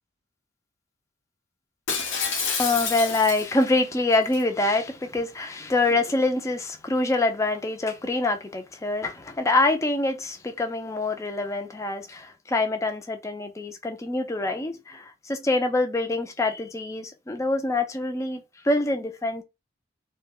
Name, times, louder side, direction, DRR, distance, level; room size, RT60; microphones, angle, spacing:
Shatter, 1.9-3.7 4.1-4.4, left 5 dB, 85° left, 0.8 m, -28 dB
voice 1, 2.6-19.4, left 2 dB, 15° left, 0.3 m, -25 dB
2.2 x 2.1 x 3.7 m
head